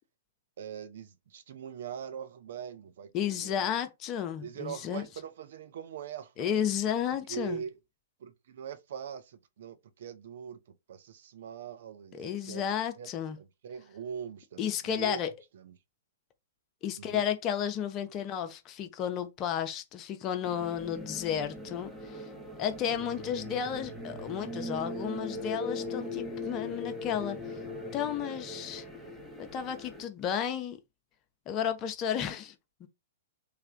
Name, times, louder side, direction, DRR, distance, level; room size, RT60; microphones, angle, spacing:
voice 1, 0.6-3.7 4.4-6.5 7.3-7.8 8.2-10.6 10.9-12.6 13.0-13.1 13.4-15.3 15.5-15.7 17.0-17.2, right 8 dB, 60° right, 0.6 m, -42 dB
voice 2, 3.1-5.1 6.4-7.6 12.1-13.4 14.6-15.3 16.8-22.3 22.6-27.6 27.9-28.8 29.4-30.8 31.5-32.5 32.8-32.9, left 9 dB, 30° left, 0.6 m, -33 dB
sound 1, 20.4-30.0, left 2 dB, ahead, 0.8 m, -40 dB
3.3 x 2.2 x 3.7 m
figure-of-eight pair, 110°, 0 cm